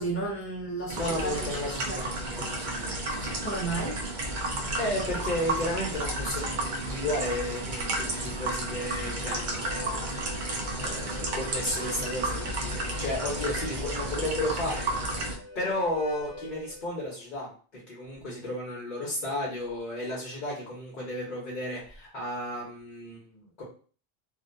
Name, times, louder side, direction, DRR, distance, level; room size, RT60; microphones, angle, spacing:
voice 1, 0.0-1.5 1.9-2.0 3.4-3.9, right 3 dB, 15° left, -5 dB, 0.5 m, -32 dB
voice 2, 0.9-3.3 4.8-10.2 10.8-12.7 13.0-15.2 15.5-23.6, left 1 dB, 50° left, -4 dB, 0.9 m, -33 dB
sound 1, 0.9-15.4, right 1 dB, 60° right, 0.6 m, -32 dB
Harmonica, 9.5-16.8, left 2 dB, 30° left, 1.1 m, -45 dB
2.4 x 2.2 x 2.5 m, 0.40 s
omnidirectional pair, 1.0 m